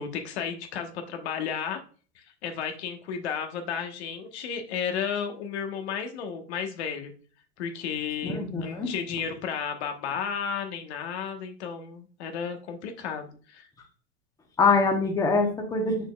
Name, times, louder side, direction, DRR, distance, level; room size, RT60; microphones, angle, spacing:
voice 1, 0.0-1.8 2.1-7.1 7.6-13.7, left 7 dB, 75° left, 6 dB, 1.2 m, -33 dB
voice 2, 8.2-8.9 14.6-16.1, left 4 dB, 10° left, 2 dB, 0.9 m, -24 dB
6.6 x 6.3 x 2.3 m, 0.40 s
supercardioid pair, 150°, 33 cm